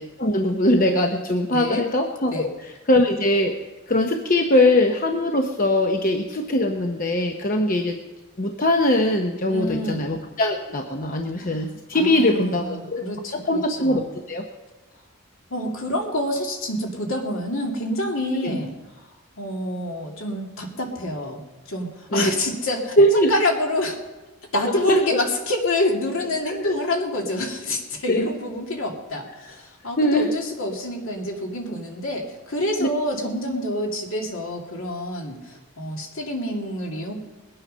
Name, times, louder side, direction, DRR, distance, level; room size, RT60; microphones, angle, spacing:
voice 1, 0.0-3.5 3.9-8.0 8.4-13.0 13.5-14.4 18.4-18.6 22.1-22.3 23.0-23.3 24.9-25.2 26.5-26.7 28.1-28.2 30.0-30.3 32.8-32.9, left 1 dB, 40° left, 3 dB, 0.9 m, -21 dB
voice 2, 1.5-1.8 2.3-2.5 9.5-10.0 11.4-11.5 11.9-14.0 15.5-18.7 19.0-19.1 19.4-24.0 24.5-37.1, left 1 dB, 65° left, 1 dB, 2.5 m, -27 dB
21.0 x 8.9 x 5.5 m, 1.2 s
head